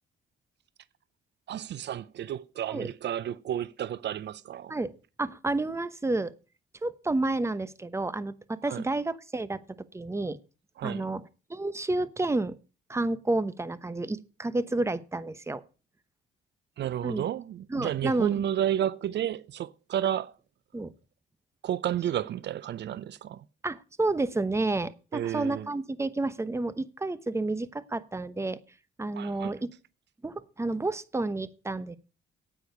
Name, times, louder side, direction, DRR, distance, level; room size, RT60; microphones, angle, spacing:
voice 1, 1.5-4.8 8.6-8.8 10.8-11.1 16.8-20.4 21.6-23.4 25.1-25.7 29.1-29.6, right 11 dB, 60° right, 0.6 m, -32 dB
voice 2, 5.2-6.3 6.8-10.4 10.8-11.2 11.5-12.6 12.9-15.6 17.0-17.2 17.7-18.4 20.7-20.9 23.6-28.6 29.0-29.7 30.2-32.0, right 2 dB, 15° right, 0.9 m, -30 dB
9.3 x 8.8 x 6.7 m
cardioid pair, 90°, 20 cm